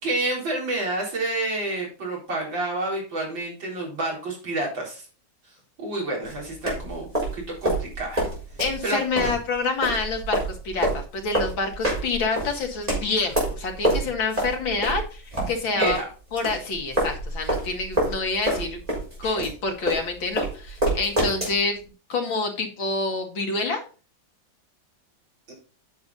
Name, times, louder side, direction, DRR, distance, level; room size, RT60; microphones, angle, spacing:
voice 1, 0.0-5.0 5.8-7.1 7.3-8.2 8.8-9.3 15.8-16.0 19.2-19.4 25.5-25.6, right 2 dB, 80° right, -2 dB, 4.8 m, -29 dB
sound 1, 6.2-16.0 16.4-21.6, right 1 dB, 20° right, 4.5 m, -27 dB
voice 2, 8.6-16.0 16.3-18.8 19.2-21.8 22.1-23.8, left 3 dB, 90° left, 3 dB, 2.6 m, -27 dB
9.3 x 6.7 x 4.0 m, 0.35 s
omnidirectional pair, 2.1 m